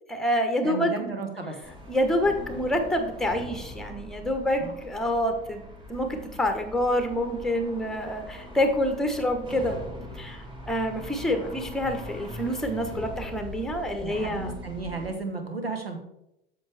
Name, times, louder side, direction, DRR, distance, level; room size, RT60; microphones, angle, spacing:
voice 1, 0.1-1.1 1.9-9.8 10.1-14.6, equal, ahead, 6 dB, 1.1 m, -27 dB
voice 2, 0.6-1.6 4.6-4.7 13.9-16.0, right 3 dB, 85° right, 5 dB, 1.2 m, -34 dB
sound 1, 1.6-15.1, left 1 dB, 15° right, 2.3 m, -41 dB
7.8 x 6.6 x 3.4 m, 0.84 s
figure-of-eight pair, 75°, 29 cm